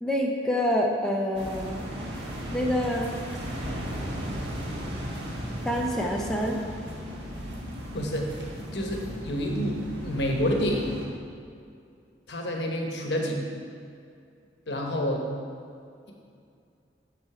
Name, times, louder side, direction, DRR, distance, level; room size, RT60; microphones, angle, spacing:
voice 1, 0.0-1.8 2.5-3.1 5.6-6.6, equal, 5° left, -1 dB, 0.6 m, -26 dB
sound 1, 1.3-11.1, equal, 65° right, 1.5 m, -36 dB
voice 2, 7.9-8.3 8.7-10.9 12.3-13.4 14.7-15.2, equal, 65° left, 1 dB, 1.1 m, -28 dB
7.6 x 6.0 x 4.9 m, 2.4 s
head